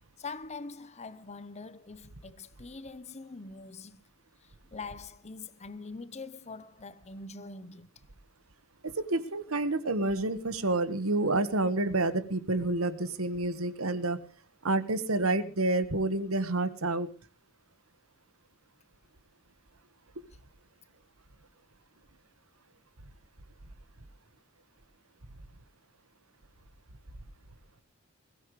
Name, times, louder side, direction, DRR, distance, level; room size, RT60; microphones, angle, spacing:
voice 1, 0.2-4.0 4.7-7.9, left 4 dB, 30° left, 0.8 m, -43 dB
voice 2, 8.8-14.2 14.6-17.1, right 2 dB, 80° right, 1.4 m, -29 dB
21.0 x 16.5 x 3.2 m
head